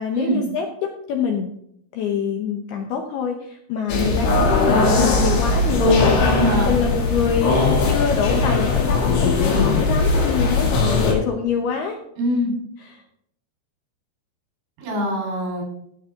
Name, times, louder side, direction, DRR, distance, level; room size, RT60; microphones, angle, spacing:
voice 1, 0.0-1.5 1.9-6.3 6.7-7.5 7.9-12.0 12.8-13.0, left 6 dB, 75° left, 3 dB, 2.4 m, -25 dB
sound 1, 3.9-11.1, left 3 dB, 60° left, 4.2 m, -19 dB
voice 2, 6.3-6.7 12.2-12.5 14.8-15.6, equal, 70° right, 0 dB, 6.6 m, -23 dB
16.0 x 7.5 x 3.8 m, 0.71 s
omnidirectional pair, 5.8 m